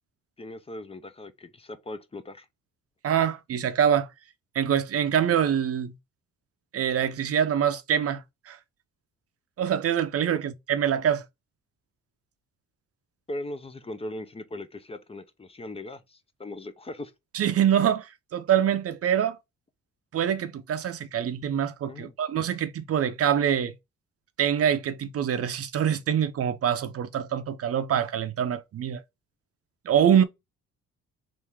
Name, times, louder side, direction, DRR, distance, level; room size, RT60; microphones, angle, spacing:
voice 1, 0.4-2.4 10.3-10.4 13.3-17.1 21.9-22.1, left 1 dB, 20° left, 0.6 m, -39 dB
voice 2, 3.0-4.1 4.5-5.9 6.7-8.6 9.6-11.2 17.3-19.4 20.1-23.7 24.4-29.0 29.8-30.2, right 9 dB, 50° right, 0.7 m, -25 dB
3.6 x 2.7 x 4.5 m
cardioid pair, 90°, 30 cm